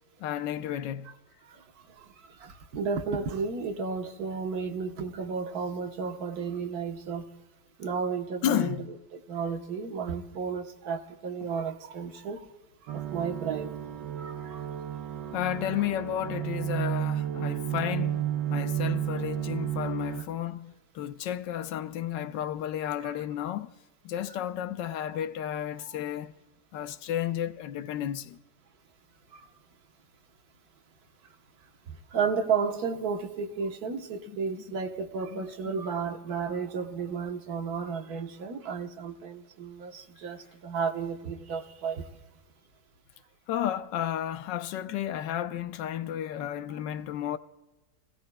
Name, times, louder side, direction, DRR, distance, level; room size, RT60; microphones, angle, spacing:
voice 1, 0.2-1.1 8.4-8.9 15.1-23.7 24.0-26.3 26.7-28.4 34.3-34.4 35.3-35.4 43.5-47.4, left 11 dB, 80° left, 1.3 m, -32 dB
voice 2, 1.4-7.3 7.8-8.9 9.1-12.5 12.8-13.7 14.2-14.6 23.0-23.1 25.8-26.1 29.3-29.4 32.1-42.1, right 5 dB, 60° right, 1.5 m, -33 dB
sound 1, 12.9-20.2, right 11 dB, 85° right, 1.5 m, -32 dB
29.5 x 16.5 x 2.2 m
omnidirectional pair, 1.9 m